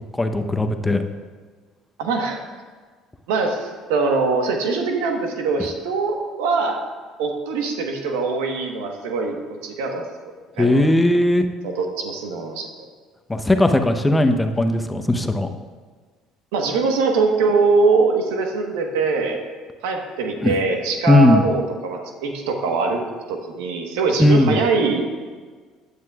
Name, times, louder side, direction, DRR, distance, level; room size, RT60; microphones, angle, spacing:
voice 1, 0.1-1.0 10.6-11.5 13.3-15.5 20.4-20.5 21.1-21.4 24.2-24.6, left 1 dB, 15° left, 6 dB, 0.9 m, -17 dB
voice 2, 2.0-2.4 3.3-6.8 7.2-9.4 9.6-10.0 10.6-10.9 11.6-12.7 16.5-19.4 19.8-23.0 23.3-25.0, right 4 dB, 85° right, 3 dB, 1.3 m, -22 dB
15.0 x 9.6 x 2.4 m, 1.5 s
supercardioid pair, 70°, 0 cm